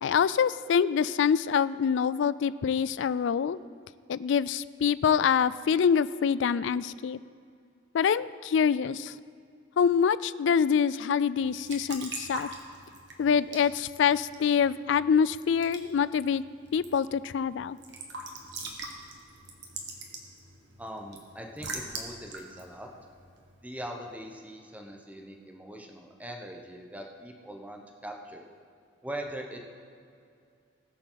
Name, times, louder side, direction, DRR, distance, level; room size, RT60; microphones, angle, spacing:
voice 1, 0.0-3.6 4.1-7.2 7.9-9.1 9.8-12.5 13.2-16.4 16.7-17.8, left 7 dB, 70° left, 17 dB, 0.3 m, -25 dB
Raindrop / Drip / Trickle dribble, 11.4-23.9, right 3 dB, 65° right, 1.5 m, -44 dB
voice 2, 20.8-22.9 23.6-28.5 29.0-29.6, right 1 dB, 10° right, 2 dB, 1.0 m, -41 dB
20.0 x 6.8 x 4.0 m, 2.3 s
head